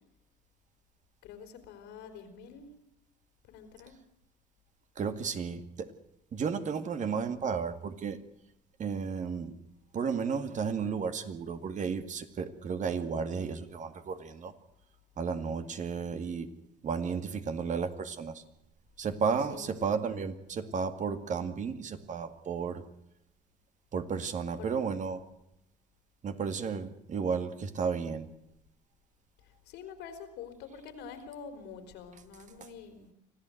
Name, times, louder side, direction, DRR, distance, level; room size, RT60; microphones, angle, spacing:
voice 1, 1.2-2.7 3.5-4.0 19.5-20.2 24.6-24.7 29.7-33.1, left 6 dB, 90° left, 8 dB, 4.1 m, -46 dB
voice 2, 5.0-5.9 6.3-8.2 8.8-9.6 9.9-14.5 15.2-16.5 16.8-18.4 19.0-22.8 23.9-25.2 26.2-28.3, right 6 dB, 45° right, 9 dB, 2.1 m, -33 dB
25.0 x 15.0 x 7.9 m, 0.80 s
cardioid pair, 110°, 17 cm